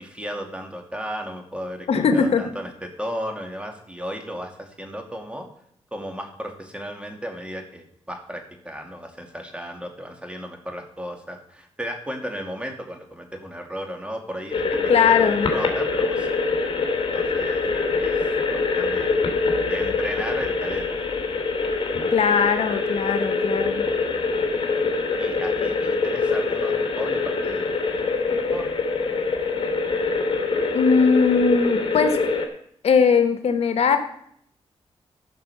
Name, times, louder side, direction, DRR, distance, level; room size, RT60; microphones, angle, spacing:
voice 1, 0.0-5.5 5.9-16.4 17.0-19.2 19.7-21.1 25.2-28.7, equal, 10° right, 4 dB, 2.3 m, -35 dB
voice 2, 1.9-2.4 14.9-15.5 22.1-23.8 30.7-32.2 32.8-34.0, left 5 dB, 75° left, 8 dB, 1.2 m, -19 dB
sound 1, 14.5-32.5, left 4 dB, 55° left, 2.6 m, -24 dB
14.5 x 5.7 x 6.9 m, 0.68 s
cardioid pair, 100°, 11 cm